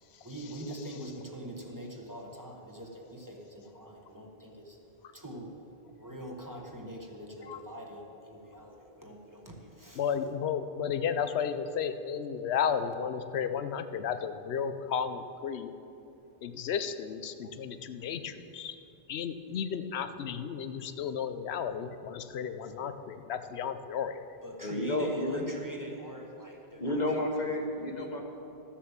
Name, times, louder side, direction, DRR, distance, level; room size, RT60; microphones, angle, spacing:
voice 1, 0.2-4.8 5.1-5.5 5.9-10.1 24.4-27.6, right 1 dB, 20° right, 0 dB, 1.2 m, -44 dB
voice 2, 10.0-15.7 16.4-18.8 19.1-24.2, left 7 dB, 90° left, 10 dB, 0.9 m, -33 dB
voice 3, 24.6-25.4 26.8-28.2, left 1 dB, 45° left, 3 dB, 1.3 m, -31 dB
13.0 x 7.2 x 7.2 m, 2.8 s
omnidirectional pair, 1.0 m